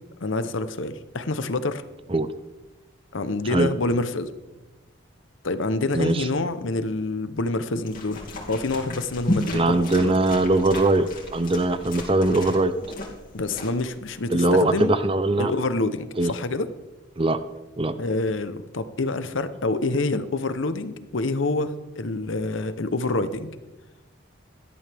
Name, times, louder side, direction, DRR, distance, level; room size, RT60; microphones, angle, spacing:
voice 1, 0.2-1.8 3.1-4.3 5.4-8.2 8.5-10.1 13.3-15.0 15.4-16.7 18.0-23.5, left 2 dB, 75° left, 12 dB, 0.9 m, -27 dB
voice 2, 5.9-6.3 9.5-12.7 14.3-15.5 16.2-16.3 17.2-17.4 17.8-17.9, right 2 dB, 25° right, 12 dB, 0.6 m, -21 dB
sound 1, 7.8-14.2, left 1 dB, 45° left, 2.6 m, -34 dB
17.5 x 12.5 x 3.5 m, 1.1 s
head